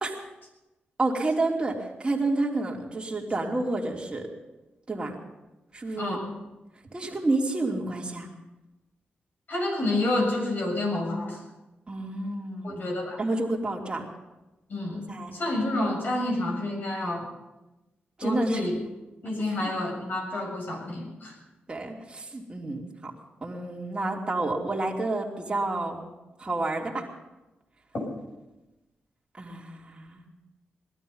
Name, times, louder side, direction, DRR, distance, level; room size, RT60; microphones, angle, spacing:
voice 1, 1.0-1.7 2.0-4.3 4.9-5.2 5.7-6.2 6.9-8.3 11.9-12.8 13.2-14.1 15.1-15.4 18.2-18.6 21.7-23.1 23.4-26.0 26.4-27.1 29.4-30.2, right 2 dB, 25° right, 0 dB, 3.0 m, -29 dB
voice 2, 6.0-6.3 9.5-11.4 12.6-13.2 14.7-15.1 15.3-17.3 18.2-18.7 19.2-21.4, left 1 dB, 55° left, 0 dB, 6.9 m, -29 dB
19.0 x 12.5 x 5.6 m, 1.0 s
cardioid pair, 80°, 4 cm